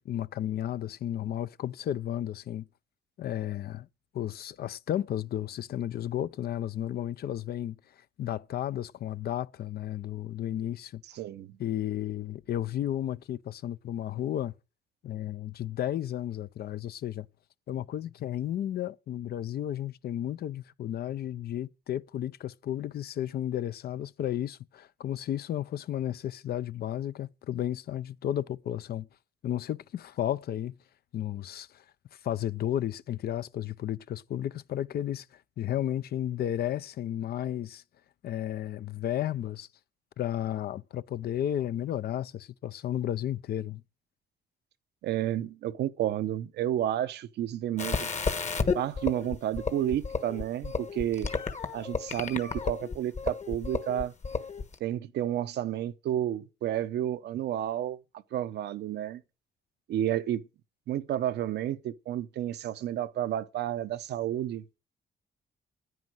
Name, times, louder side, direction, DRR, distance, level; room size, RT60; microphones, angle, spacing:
voice 1, 0.0-2.7 3.2-3.9 4.1-7.8 8.2-11.0 11.6-14.5 15.0-17.3 17.7-29.1 29.4-30.8 31.1-31.8 32.1-37.8 38.2-39.7 40.2-43.8, left 11 dB, 70° left, 0.5 m, -33 dB
voice 2, 11.2-11.6 45.0-48.1 48.7-51.3 51.7-54.1 54.8-58.0 58.3-59.2 59.9-60.4 60.9-64.6, right 11 dB, 85° right, 0.7 m, -31 dB
sound 1, 47.8-54.8, left 4 dB, 45° left, 1.3 m, -32 dB
9.6 x 9.5 x 6.3 m
cardioid pair, 85°, 17 cm